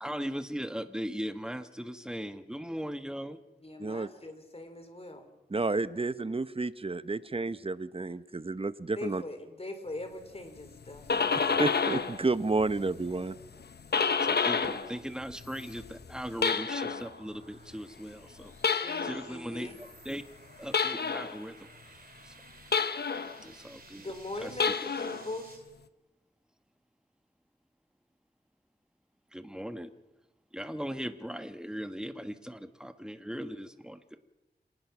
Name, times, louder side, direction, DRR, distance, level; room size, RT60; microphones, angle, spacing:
voice 1, 0.0-3.4 14.2-19.7 20.0-20.2 20.6-21.7 22.2-22.3 23.4-24.1 24.4-24.5 29.3-29.9 30.5-34.2, equal, 5° right, 9 dB, 1.4 m, -38 dB
voice 2, 3.6-5.3 9.0-11.2 18.8-19.8 23.9-25.6, left 2 dB, 35° left, 7 dB, 3.8 m, -41 dB
voice 3, 5.5-9.2 11.4-13.3, right 3 dB, 35° right, 14 dB, 0.9 m, -31 dB
sound 1, 10.8-12.2 12.5-14.9 15.2-17.1 18.6-19.3 20.7-21.4 22.7-23.4 24.5-25.3, left 5 dB, 75° left, 1.0 m, -29 dB
sound 2, 15.5-25.6, right 3 dB, 60° right, 3.8 m, -56 dB
27.0 x 19.0 x 6.1 m, 1.0 s
wide cardioid pair, 70°, 17 cm